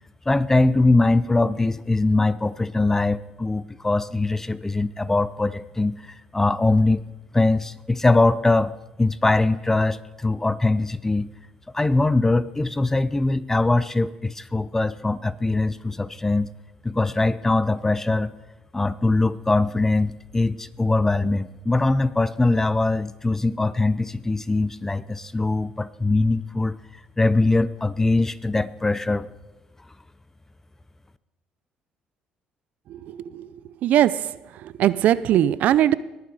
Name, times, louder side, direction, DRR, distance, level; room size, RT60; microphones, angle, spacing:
voice 1, 0.3-7.0 7.3-8.7 9.0-11.3 11.7-16.5 16.8-18.3 18.7-26.8 27.2-29.3, left 2 dB, 15° left, 17 dB, 0.5 m, -22 dB
voice 2, 33.8-34.2 34.6-35.9, right 12 dB, 70° right, 18 dB, 0.4 m, -19 dB
19.0 x 7.3 x 4.7 m, 1.0 s
cardioid pair, 100°, 3 cm